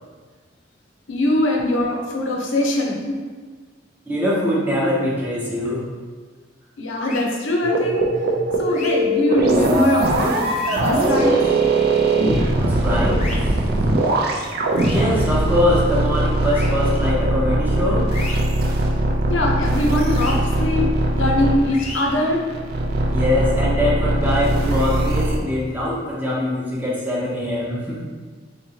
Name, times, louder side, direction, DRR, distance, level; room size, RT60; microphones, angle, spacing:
voice 1, 1.1-3.2 6.8-8.1 8.6-11.4 19.3-20.9 21.1-22.4, left 1 dB, 75° left, 0 dB, 0.6 m, -22 dB
voice 2, 4.1-5.9 12.6-13.2 14.9-18.1 23.1-28.0, left 1 dB, 10° right, -5 dB, 0.7 m, -22 dB
sound 1, 7.0-7.2 8.7-8.9 10.5-10.8 13.2-13.4 14.8-15.0 16.5-16.7 18.1-18.4 20.1-20.3 21.7-22.0, left 3 dB, 35° left, 0.6 m, -33 dB
sound 2, 7.6-25.4, right 2 dB, 50° right, 0.4 m, -20 dB
4.0 x 2.9 x 2.7 m, 1.5 s
head